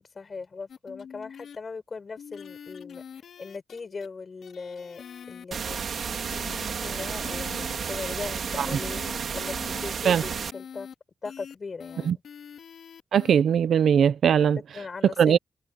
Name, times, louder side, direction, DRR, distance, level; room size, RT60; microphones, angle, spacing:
voice 1, 0.0-3.0 3.4-5.9 6.2-9.0 9.3-10.9 11.2-12.2 14.7-15.4, left 4 dB, 35° left, 6.8 m, -39 dB
sound 1, 0.7-1.6 2.2-4.1 4.4-5.4 6.1-7.8 8.5-9.8 10.5-10.9 11.2-11.5 11.8-13.3, left 7 dB, 80° left, 3.6 m, -44 dB
sound 2, 5.5-10.5, right 6 dB, 60° right, 2.9 m, -32 dB
voice 2, 13.1-14.6 15.2-15.4, right 8 dB, 80° right, 0.6 m, -20 dB
wide cardioid pair, 165°, 0 cm